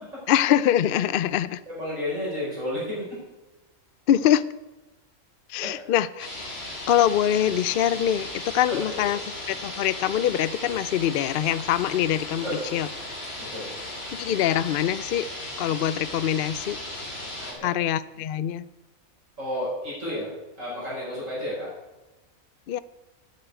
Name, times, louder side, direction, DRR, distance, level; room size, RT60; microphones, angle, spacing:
voice 1, 0.3-1.6 4.1-4.5 5.5-6.3 6.9-9.2 9.5-12.4 12.7-12.9 14.1-15.3 15.6-16.8 17.6-18.7 22.7-22.8, left 11 dB, 65° left, 17 dB, 0.5 m, -24 dB
voice 2, 1.7-3.1 5.6-5.8 8.9-9.1 12.4-12.6 13.4-13.7 17.4-17.7 19.4-20.3 20.6-21.7, left 1 dB, 60° right, -7 dB, 5.6 m, -31 dB
sound 1, 6.2-17.5, left 1 dB, 45° left, 3.0 m, -36 dB
9.6 x 8.5 x 9.1 m, 1.1 s
omnidirectional pair, 1.5 m